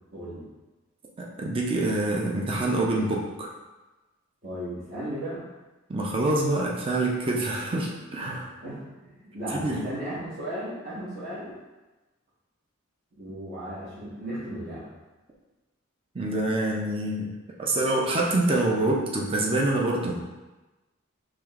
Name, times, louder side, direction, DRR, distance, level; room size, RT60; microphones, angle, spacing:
voice 1, 0.1-0.5 4.4-5.5 8.6-11.6 13.2-14.9, right 1 dB, 45° right, -10 dB, 1.2 m, -35 dB
voice 2, 1.2-3.5 5.9-8.5 9.5-9.8 16.1-17.3 17.6-20.2, right 2 dB, 25° right, -2 dB, 0.5 m, -26 dB
4.8 x 3.0 x 2.4 m, 1.1 s
head